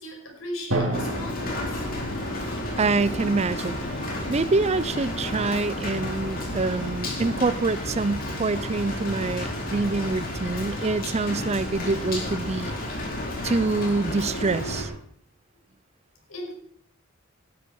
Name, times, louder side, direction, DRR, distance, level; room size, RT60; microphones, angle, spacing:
voice 1, 0.0-1.9 16.3-16.5, left 1 dB, 90° left, 1 dB, 5.5 m, -37 dB
Drum, 0.7-4.4, right 1 dB, 80° right, 3.4 m, -33 dB
Rain, 0.9-14.8, left 1 dB, 45° left, 4.6 m, -31 dB
voice 2, 2.8-3.8 4.0-12.7 13.4-14.9, right 3 dB, 30° right, 17 dB, 0.5 m, -26 dB
18.0 x 12.0 x 4.8 m, 0.67 s
head